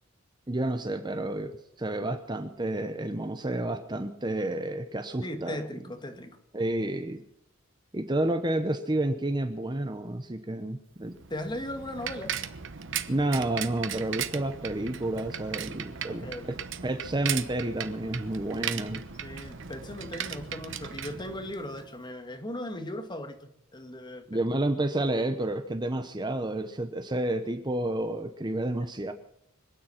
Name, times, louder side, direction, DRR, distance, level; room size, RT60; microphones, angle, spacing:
voice 1, 0.5-1.5 1.8-5.6 6.5-7.2 7.9-11.1 13.1-19.0 24.3-29.1, right 1 dB, 20° right, 0.9 m, -30 dB
voice 2, 5.2-6.4 11.3-12.4 16.1-16.5 19.2-24.4, left 1 dB, 20° left, 1.9 m, -38 dB
Bicycle, 11.0-21.9, right 8 dB, 60° right, 1.1 m, -37 dB
25.0 x 9.4 x 5.8 m
head